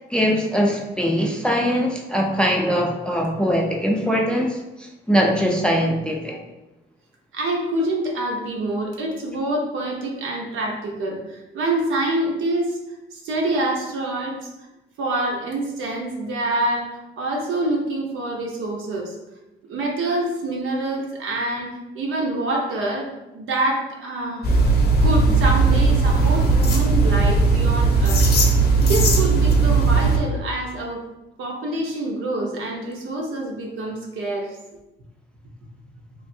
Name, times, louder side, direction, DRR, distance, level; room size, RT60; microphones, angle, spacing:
voice 1, 0.1-6.4, equal, 5° left, 0 dB, 0.5 m, -21 dB
voice 2, 7.3-12.8 13.1-14.5 15.0-19.2 19.7-24.4 25.0-28.2 28.8-31.0 31.4-34.6, right 2 dB, 80° right, 0 dB, 0.7 m, -26 dB
sound 1, 24.4-30.2, right 3 dB, 50° left, 0.6 m, -17 dB
3.1 x 2.5 x 2.6 m, 0.99 s
cardioid pair, 90°, 20 cm